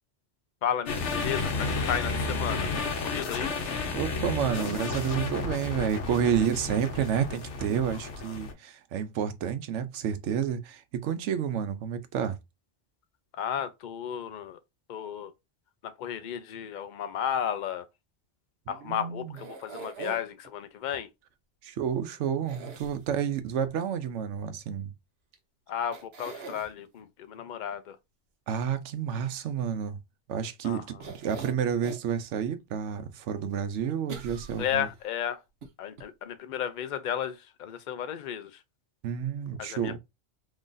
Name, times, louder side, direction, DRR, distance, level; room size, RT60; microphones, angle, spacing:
voice 1, 0.6-3.5 8.3-8.4 13.4-14.6 14.9-15.3 15.8-17.9 18.7-21.1 25.7-28.0 30.6-30.8 34.6-35.4 35.8-38.6 39.6-39.9, left 9 dB, 55° left, 0.5 m, -33 dB
sound 1, 0.9-8.5, left 3 dB, 75° left, 1.1 m, -32 dB
voice 2, 3.9-12.4 18.7-19.4 21.6-24.9 28.5-30.0 30.3-34.9 39.0-40.0, right 8 dB, 85° right, 0.9 m, -30 dB
sound 2, 19.3-20.5 22.5-23.4 25.3-25.4 25.9-26.7 31.0-32.1 32.6-32.7 34.1-35.1 35.6-35.7 36.0-36.1, right 4 dB, 65° right, 1.0 m, -42 dB
3.1 x 2.5 x 3.8 m
omnidirectional pair, 1.2 m